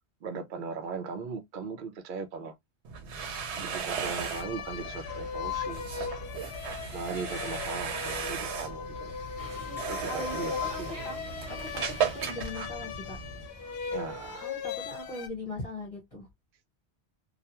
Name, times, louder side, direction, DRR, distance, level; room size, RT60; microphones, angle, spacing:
voice 1, 0.2-2.6 3.5-5.8 6.9-9.1 9.8-10.9 13.9-14.5, right 5 dB, 60° right, 0.6 m, -38 dB
sound 1, 2.8-13.5, right 6 dB, 85° right, 0.9 m, -36 dB
sound 2, 4.0-15.3, left 7 dB, 70° left, 0.8 m, -38 dB
sound 3, 9.4-14.4, right 1 dB, 20° right, 0.8 m, -48 dB
voice 2, 9.6-10.4 10.6-11.2 11.5-11.8 12.1-13.2 14.4-16.3, left 1 dB, 35° left, 1.1 m, -40 dB
2.3 x 2.2 x 2.8 m
omnidirectional pair, 1.1 m